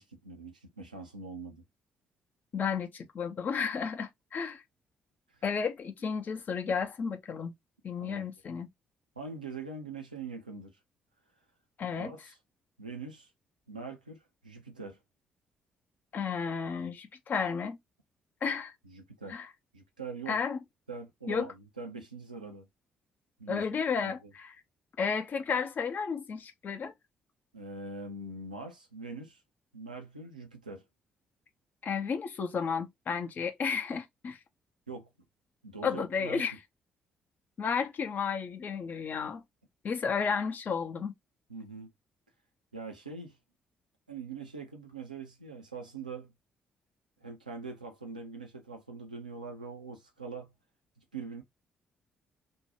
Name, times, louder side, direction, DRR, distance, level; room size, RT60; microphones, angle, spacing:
voice 1, 0.0-1.6 8.0-8.3 9.2-10.8 12.0-12.4 12.8-13.3 13.7-15.0 18.9-19.3 19.7-20.4 20.9-22.7 23.4-23.6 24.0-24.3 27.5-29.4 29.7-30.8 34.9-35.1 35.6-36.4 41.5-41.9 42.7-43.4 44.1-46.3 47.2-50.5 51.1-51.4, right 4 dB, 85° right, 0.5 m, -43 dB
voice 2, 2.5-4.6 5.4-7.5 7.8-8.7 11.8-12.1 16.1-17.8 18.4-18.7 19.3-19.5 20.3-20.6 21.3-21.5 23.5-24.5 25.0-26.9 31.8-34.4 35.8-36.6 37.6-39.4 39.8-41.1, left 6 dB, 45° left, 0.6 m, -32 dB
2.7 x 2.2 x 2.9 m
figure-of-eight pair, 45°, 4 cm